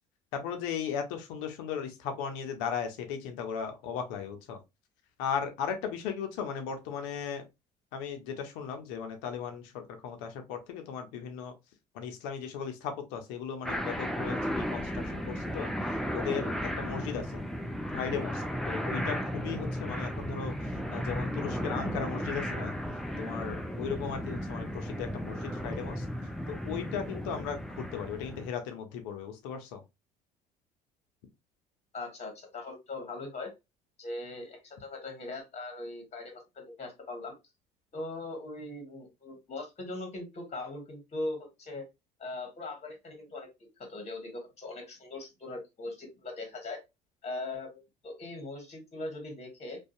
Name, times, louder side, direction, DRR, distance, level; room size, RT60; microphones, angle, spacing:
voice 1, 0.3-4.6 5.2-7.4 7.9-11.5 11.9-15.7 16.1-17.4 17.9-20.5 20.9-22.7 23.2-26.0 26.5-29.8, left 7 dB, 75° left, 0.7 m, -37 dB
sound 1, 13.6-28.5, equal, ahead, 0.4 m, -34 dB
voice 2, 31.9-33.5 34.0-37.3 37.9-41.8 42.2-43.5 43.8-46.8 47.2-49.8, left 2 dB, 35° left, 1.2 m, -40 dB
2.6 x 2.3 x 2.3 m
hypercardioid pair, 70°, 20 cm